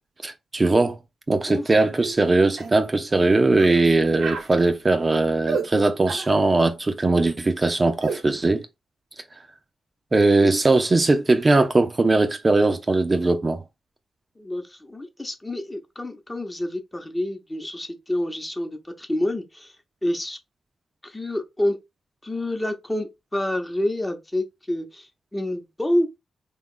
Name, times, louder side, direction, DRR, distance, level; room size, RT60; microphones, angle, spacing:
voice 1, 0.2-1.0 1.3-8.6 10.1-13.6, right 2 dB, 35° right, 0.6 m, -20 dB
sound 1, 2.0-2.2 2.6-2.8 3.6-3.8 4.2-4.5 5.5-5.7 6.1-6.3 8.0-8.2, right 5 dB, 80° right, 0.8 m, -30 dB
voice 2, 14.4-19.7 20.0-20.4 21.0-21.8 22.2-26.2, left 1 dB, 20° left, 0.9 m, -28 dB
3.5 x 2.4 x 3.8 m
cardioid pair, 60°, 0 cm